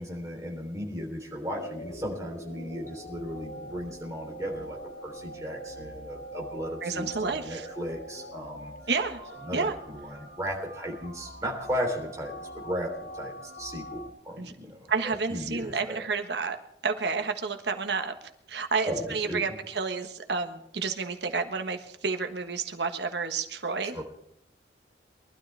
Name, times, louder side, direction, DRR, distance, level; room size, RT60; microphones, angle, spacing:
voice 1, 0.0-8.7 9.4-16.0 18.9-19.4 23.8-24.0, equal, 15° right, -1 dB, 3.4 m, -36 dB
sound 1, 1.5-14.1, right 1 dB, 70° left, 3.1 m, -43 dB
voice 2, 6.8-7.7 8.9-9.2 9.5-9.7 14.4-14.5 14.9-16.6 16.8-18.1 18.5-24.0, right 4 dB, 75° right, 6 dB, 1.3 m, -30 dB
23.0 x 12.5 x 3.4 m, 0.76 s
head